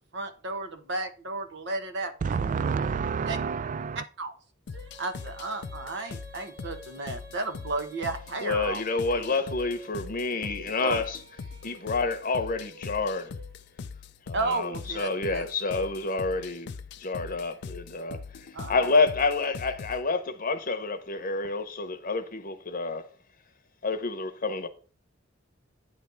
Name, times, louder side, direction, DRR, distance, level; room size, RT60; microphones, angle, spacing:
voice 1, 0.1-2.3 3.3-3.4 4.2-4.3 5.0-8.8 9.1-9.4 10.8-11.0 14.3-15.5 18.5-18.9, right 3 dB, 65° right, 1.2 m, -33 dB
voice 2, 2.2-4.0, right 5 dB, 40° right, 0.3 m, -29 dB
sound 1, 4.7-20.0, left 5 dB, 60° left, 0.5 m, -41 dB
Female singing, 4.7-13.8, right 1 dB, 80° right, 2.0 m, -50 dB
voice 3, 8.4-11.2 11.6-13.3 14.3-16.7 17.0-23.1 23.8-24.7, left 3 dB, 45° left, 0.9 m, -28 dB
9.2 x 3.3 x 6.7 m
head